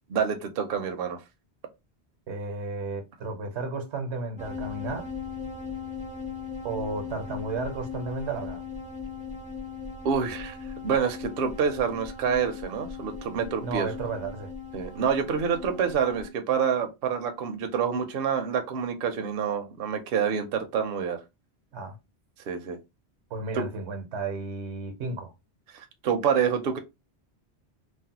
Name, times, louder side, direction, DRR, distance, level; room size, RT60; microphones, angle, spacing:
voice 1, 0.1-1.2 10.0-10.6 10.8-13.9 14.7-21.2 22.5-22.8 23.6-23.7 25.7-26.8, right 7 dB, 65° right, 0.7 m, -27 dB
voice 2, 2.3-5.1 6.6-8.6 13.6-14.5 21.7-22.0 23.3-25.3, right 3 dB, 85° right, 1.0 m, -33 dB
sound 1, 4.4-16.3, left 5 dB, 10° right, 0.4 m, -38 dB
3.1 x 2.1 x 2.8 m
omnidirectional pair, 1.1 m